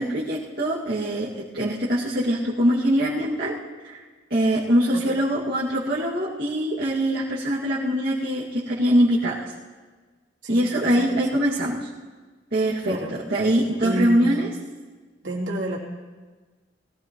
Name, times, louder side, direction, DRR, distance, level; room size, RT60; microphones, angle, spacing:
voice 1, 0.0-3.6 3.8-4.0 4.3-9.5 10.5-11.9 12.5-13.0 13.3-14.5, equal, 55° right, -9 dB, 2.2 m, -23 dB
voice 2, 10.4-11.2 12.9-13.2 13.8-14.4 15.2-15.8, right 1 dB, 80° right, -4 dB, 3.1 m, -30 dB
21.5 x 16.5 x 3.1 m, 1.3 s
head